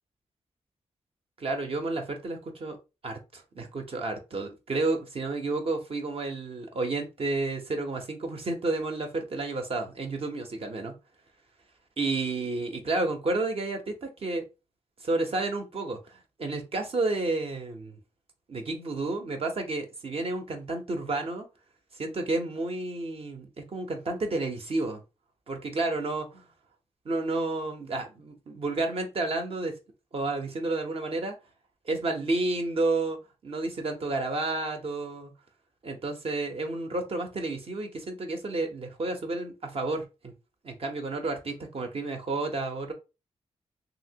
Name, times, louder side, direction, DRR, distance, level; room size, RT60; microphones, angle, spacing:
voice 1, 1.4-2.8 3.0-11.0 12.0-14.4 15.0-18.0 18.5-21.5 21.9-25.0 25.5-26.4 27.0-29.8 30.1-31.4 31.9-33.2 33.4-35.3 35.8-40.3 40.6-42.9, right 2 dB, 55° right, 0.8 m, -31 dB
2.9 x 2.8 x 2.8 m
cardioid pair, 75°, 12 cm